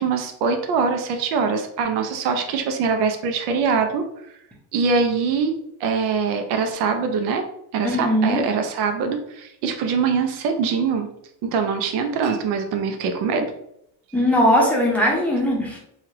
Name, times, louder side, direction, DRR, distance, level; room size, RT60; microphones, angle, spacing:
voice 1, 0.0-4.0 4.7-5.5 5.8-7.4 7.7-11.1 11.4-13.5, right 5 dB, 80° right, 6 dB, 0.6 m, -23 dB
voice 2, 7.8-8.4 14.1-15.8, equal, 5° left, -3 dB, 0.7 m, -19 dB
3.2 x 2.4 x 2.8 m, 0.76 s
cardioid pair, 130°, 39 cm